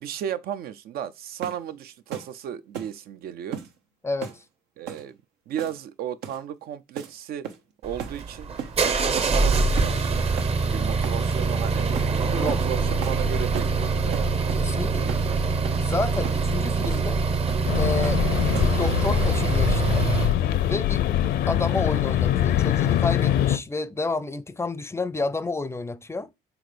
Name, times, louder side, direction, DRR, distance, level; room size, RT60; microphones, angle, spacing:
voice 1, 0.0-3.6 4.8-5.2 5.5-7.5 7.8-8.5 8.8-10.3 10.7-11.9 12.1-14.3 15.0-15.4, right 10 dB, 65° right, 0.6 m, -34 dB
sound 1, 1.4-1.7 2.1-2.3 2.7-3.0 3.5-3.7 4.2-4.4 4.9-5.1 5.6-5.9 6.2-6.4 7.0-7.1 7.4-7.7 8.0-8.2 8.6-8.8 9.2-9.4 9.8-10.0 10.4-10.5 11.0-11.2 12.0-12.1 12.5-12.7 13.0-13.2 13.5-13.8 14.1-14.7 15.1-15.3 15.6-15.8 16.2-16.4 16.8-17.1 17.5-17.7 18.0-18.2 18.5-18.8, right 8 dB, 90° right, 1.1 m, -36 dB
voice 2, 4.0-4.4 12.3-12.8 14.6-15.2 15.8-17.2 17.8-18.2 18.6-20.0 20.7-21.0 21.5-26.3, left 3 dB, 15° left, 0.5 m, -30 dB
sound 2, 7.8-20.4, right 4 dB, 35° right, 0.8 m, -24 dB
sound 3, 17.7-23.6, left 11 dB, 75° left, 0.7 m, -23 dB
6.1 x 3.9 x 5.1 m
cardioid pair, 110°, 17 cm